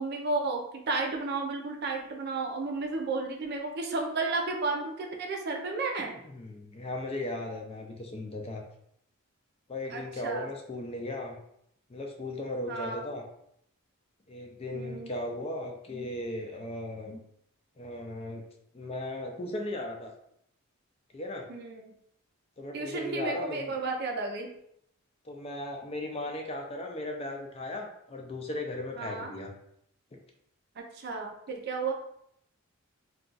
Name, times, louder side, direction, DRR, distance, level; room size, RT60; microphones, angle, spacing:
voice 1, 0.0-6.1 9.9-10.5 12.7-13.0 14.7-15.1 21.5-21.9 22.7-24.5 29.0-29.3 30.8-31.9, right 3 dB, 50° right, 2 dB, 0.5 m, -33 dB
voice 2, 6.2-8.6 9.7-11.4 11.9-13.3 14.3-17.2 17.8-18.4 18.7-20.1 21.1-21.5 22.6-23.7 25.2-29.5 30.1-30.2, left 1 dB, 30° left, 2 dB, 0.4 m, -37 dB
2.3 x 2.3 x 3.8 m, 0.72 s
head